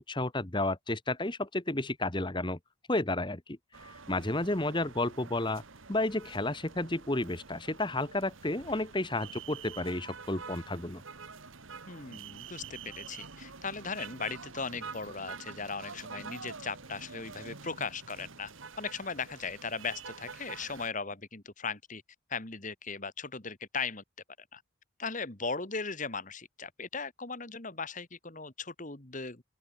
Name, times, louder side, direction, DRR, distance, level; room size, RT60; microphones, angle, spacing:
voice 1, 0.0-2.6 2.9-3.6 3.8-5.6 5.9-11.0, left 2 dB, 20° left, 1.3 m, -32 dB
sound 1, 3.7-20.9, right 5 dB, 70° right, 1.9 m, -47 dB
voice 2, 11.9-18.5 18.8-22.0 22.3-24.0 24.5-24.6 25.0-29.4, left 4 dB, 35° left, 1.9 m, -38 dB
open air
head